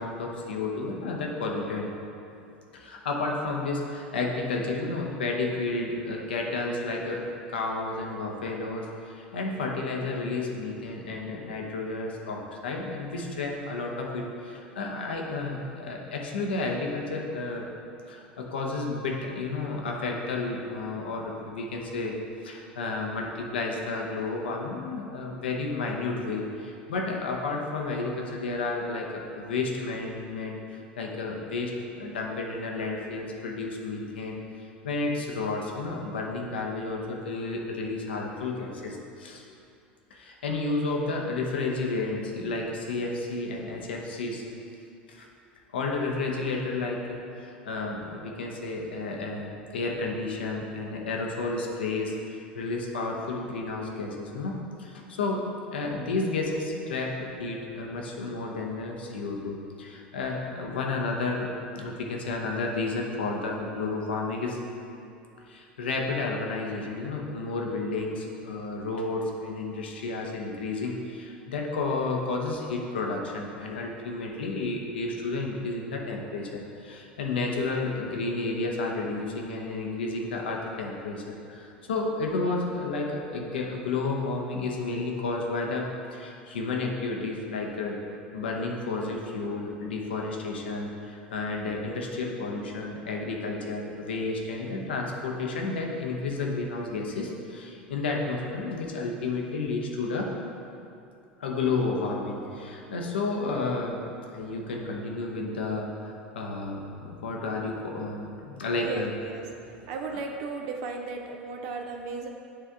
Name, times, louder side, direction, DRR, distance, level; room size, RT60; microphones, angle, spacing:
voice 1, 0.0-1.9 2.7-17.7 18.1-22.1 22.4-30.6 31.0-34.3 34.8-39.4 40.1-44.4 45.1-45.3 45.7-55.5 55.7-61.5 61.7-64.6 65.5-88.0 88.3-100.3 101.4-104.0 104.3-109.1 110.1-110.2, left 3 dB, 75° left, 0 dB, 0.8 m, -31 dB
voice 2, 108.8-112.3, right 4 dB, 55° right, 2 dB, 0.5 m, -36 dB
9.7 x 3.5 x 3.5 m, 2.6 s
figure-of-eight pair, 75°, 6 cm